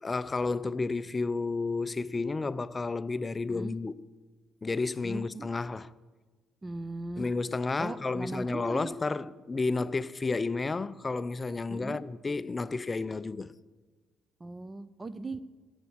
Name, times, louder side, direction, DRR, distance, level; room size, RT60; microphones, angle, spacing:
voice 1, 0.0-3.9 4.6-5.9 7.2-13.5, left 3 dB, 30° left, 0.4 m, -31 dB
voice 2, 5.0-5.5 6.6-7.3 7.8-9.0 11.7-12.0 14.4-15.4, right 2 dB, 25° right, 0.5 m, -38 dB
8.9 x 6.9 x 7.9 m
hypercardioid pair, 50°, 0 cm